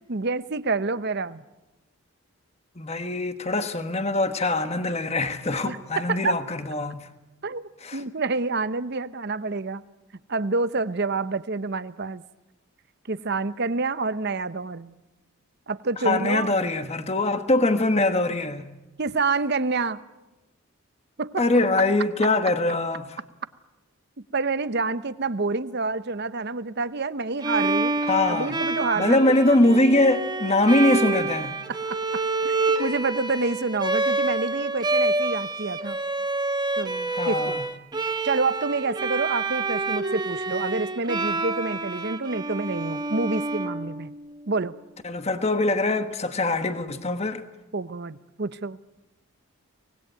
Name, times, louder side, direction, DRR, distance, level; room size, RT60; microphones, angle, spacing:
voice 1, 0.0-1.4 5.7-6.4 7.4-9.8 10.3-12.2 13.1-14.9 15.7-16.5 19.0-20.0 21.2-21.5 24.3-27.9 28.3-29.4 31.7-36.0 36.8-37.6 38.2-44.1 44.5-44.7 47.7-48.8, right 3 dB, 50° right, 0.8 m, -28 dB
voice 2, 2.8-7.1 7.8-8.0 16.0-18.7 21.4-23.2 28.1-28.6 29.0-31.6 37.1-37.6 45.0-47.4, left 2 dB, 30° left, 1.3 m, -23 dB
Bowed string instrument, 27.4-44.3, right 3 dB, 20° right, 1.1 m, -28 dB
24.5 x 19.5 x 9.2 m
head